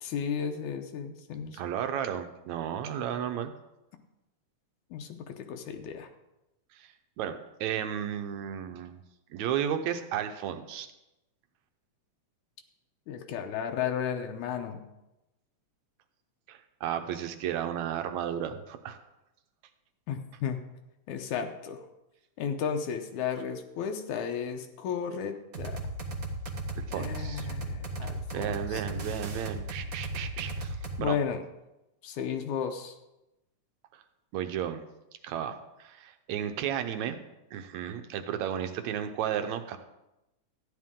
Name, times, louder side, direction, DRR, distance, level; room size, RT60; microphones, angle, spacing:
voice 1, 0.0-1.6 4.9-6.1 13.1-14.8 20.1-20.6 21.1-21.9 22.4-25.8 26.9-28.8 31.0-31.4 32.0-32.9, left 7 dB, 85° left, 5 dB, 2.3 m, -34 dB
voice 2, 1.6-3.5 6.7-6.9 7.2-9.0 9.3-10.9 16.5-19.0 26.7-27.5 28.0-31.2 34.3-34.8 35.2-37.2 37.5-39.8, right 9 dB, 75° right, 8 dB, 2.1 m, -33 dB
sound 1, 25.5-31.0, right 2 dB, 45° right, 1.1 m, -36 dB
14.0 x 10.5 x 3.7 m, 0.93 s
omnidirectional pair, 3.4 m